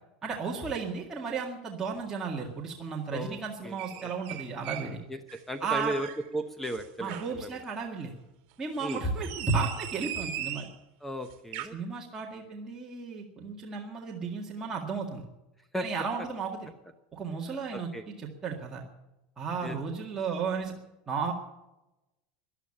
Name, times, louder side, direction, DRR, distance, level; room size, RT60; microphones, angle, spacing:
voice 1, 0.2-5.0 5.6-5.9 7.0-8.1 8.6-10.7 11.7-15.2 15.8-16.6 17.1-18.8 19.4-20.7 21.1-21.3, right 5 dB, 15° right, -3 dB, 2.0 m, -34 dB
voice 2, 3.1-4.1 5.1-6.1 6.3-7.6 8.8-9.0 11.0-11.8 15.7-15.9 17.5-18.0 19.6-19.8, right 1 dB, 5° left, 9 dB, 0.8 m, -36 dB
sound 1, 3.8-4.9 5.3-6.2 6.6-7.4 8.7-10.7 11.3-11.7, right 11 dB, 55° right, 2.2 m, -39 dB
14.0 x 11.5 x 8.8 m, 0.97 s
supercardioid pair, 160°, 4 cm